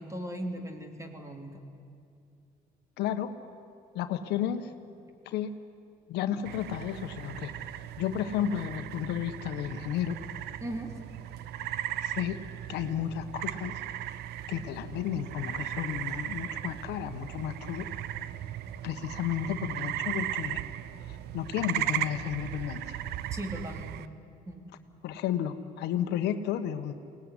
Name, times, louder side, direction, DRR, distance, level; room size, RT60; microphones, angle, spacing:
voice 1, 0.0-1.6 10.6-10.9 23.3-24.1 24.5-24.7, right 1 dB, 15° right, 4 dB, 3.2 m, -38 dB
voice 2, 3.0-3.3 3.9-4.7 5.2-5.5 6.1-7.5 8.0-10.2 12.0-12.4 12.7-13.8 14.5-17.9 18.8-20.6 21.0-23.0 25.0-26.9, left 10 dB, 80° left, 9 dB, 1.3 m, -32 dB
sound 1, 6.4-24.1, right 12 dB, 75° right, 0.8 m, -37 dB
22.5 x 18.5 x 9.8 m, 2.4 s
cardioid pair, 110°, 17 cm